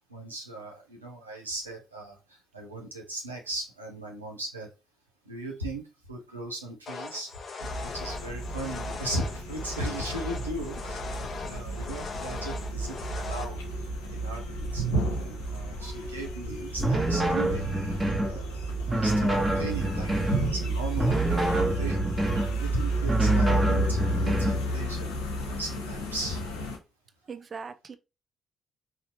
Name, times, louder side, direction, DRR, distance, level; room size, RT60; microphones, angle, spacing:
voice 1, 0.1-4.7 5.3-5.8 6.1-7.3 7.8-14.8 15.2-20.1 20.4-22.0 22.6-26.5, right 1 dB, 85° right, 0.7 m, -38 dB
sound 1, 6.9-13.4, left 4 dB, 45° left, 0.7 m, -39 dB
sound 2, 7.6-26.8, right 2 dB, 75° left, 1.0 m, -31 dB
sound 3, 16.8-18.4 18.9-20.4 20.9-22.5 23.0-24.6, right 1 dB, 15° right, 1.3 m, -26 dB
voice 2, 27.3-28.0, right 5 dB, 40° right, 0.5 m, -41 dB
4.2 x 2.8 x 2.9 m
figure-of-eight pair, 40°, 0 cm